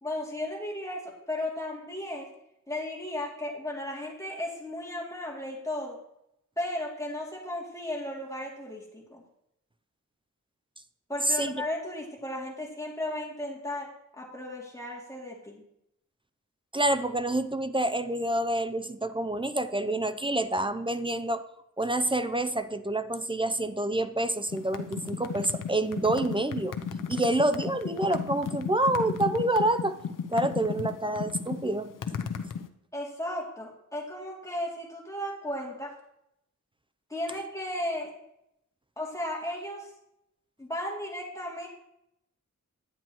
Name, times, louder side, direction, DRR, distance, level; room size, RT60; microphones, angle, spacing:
voice 1, 0.0-2.3 2.7-6.0 6.6-9.2 11.1-13.9 14.2-15.6 32.9-35.9 37.1-38.1 39.0-39.9 40.6-41.7, left 1 dB, 10° left, -2 dB, 2.6 m, -35 dB
voice 2, 16.7-21.4 21.8-26.8 27.1-30.0 30.3-31.9, right 1 dB, 15° right, 10 dB, 0.5 m, -27 dB
sound 1, 24.5-32.7, left 7 dB, 90° left, 0.7 m, -34 dB
10.5 x 9.0 x 3.0 m, 0.79 s
wide cardioid pair, 75°, 31 cm